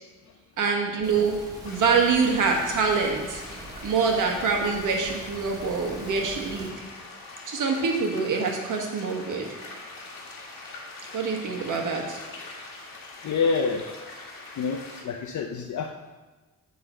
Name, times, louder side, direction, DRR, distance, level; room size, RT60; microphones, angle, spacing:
voice 1, 0.6-1.4 1.6-3.4 3.8-6.7 7.5-9.5 11.1-12.2, right 5 dB, 65° right, 2 dB, 1.5 m, -25 dB
sound 1, 1.0-6.7, right 1 dB, 10° right, 1.5 m, -43 dB
sound 2, 1.6-15.0, left 3 dB, 85° left, 1.9 m, -43 dB
voice 2, 13.2-13.8 14.6-15.9, left 5 dB, 60° left, 3 dB, 0.6 m, -27 dB
9.4 x 3.9 x 6.6 m, 1.2 s
wide cardioid pair, 155°, 33 cm